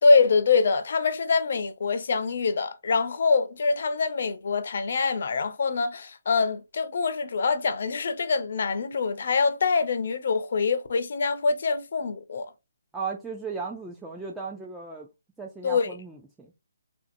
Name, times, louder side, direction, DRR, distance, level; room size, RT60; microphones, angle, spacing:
voice 1, 0.0-12.5 15.6-15.9, left 4 dB, 60° left, 0.5 m, -24 dB
voice 2, 12.9-15.1 15.4-16.5, right 5 dB, 5° right, 0.3 m, -36 dB
2.8 x 2.6 x 2.5 m
hypercardioid pair, 155°, 0 cm